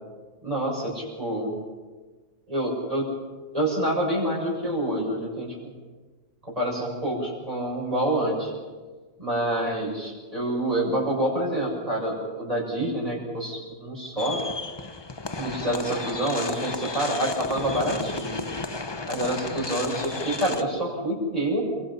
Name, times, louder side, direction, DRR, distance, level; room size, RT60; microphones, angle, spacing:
voice 1, 0.4-1.5 2.5-3.1 3.5-5.6 6.4-8.5 9.2-14.4 15.4-18.4 19.1-21.7, right 1 dB, 35° right, -5 dB, 6.9 m, -27 dB
sound 1, 14.2-20.6, left 3 dB, 25° left, 0.9 m, -33 dB
28.5 x 24.5 x 5.8 m, 1.4 s
omnidirectional pair, 1.1 m